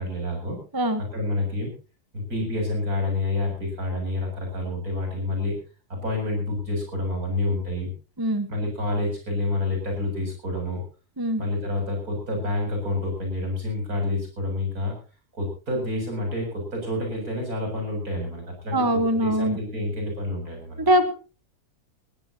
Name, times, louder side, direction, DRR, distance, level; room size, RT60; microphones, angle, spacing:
voice 1, 0.0-0.6 1.0-1.7 2.1-5.6 5.9-7.9 8.5-10.8 11.4-14.9 15.3-18.8 19.1-20.8, left 2 dB, 65° right, 1 dB, 7.9 m, -28 dB
voice 2, 8.2-8.5 11.2-11.4 18.7-19.6 20.8-21.1, equal, 15° right, 9 dB, 1.1 m, -22 dB
20.5 x 16.5 x 2.9 m, 0.34 s
omnidirectional pair, 1.7 m